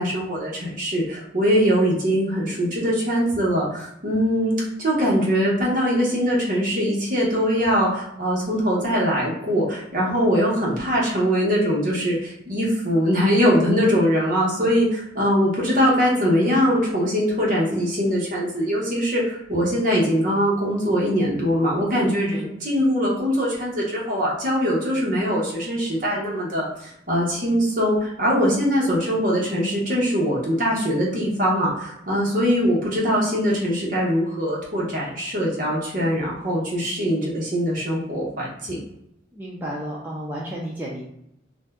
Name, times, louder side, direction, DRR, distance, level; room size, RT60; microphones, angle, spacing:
voice 1, 0.0-26.7 27.1-38.8, equal, 45° right, -5 dB, 1.0 m, -22 dB
voice 2, 39.3-41.0, right 1 dB, 10° right, -5 dB, 0.4 m, -32 dB
2.6 x 2.2 x 3.4 m, 0.79 s
head